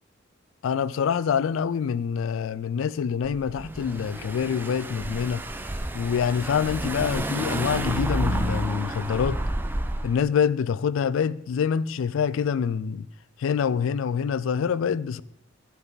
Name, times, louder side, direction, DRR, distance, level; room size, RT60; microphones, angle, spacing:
voice 1, 0.6-5.4 5.9-9.4 10.0-13.1 13.4-15.2, left 7 dB, 70° left, 0.3 m, -26 dB
Car / Engine, 3.2-10.2, right 1 dB, 10° right, 0.4 m, -30 dB
12.0 x 5.4 x 3.9 m
head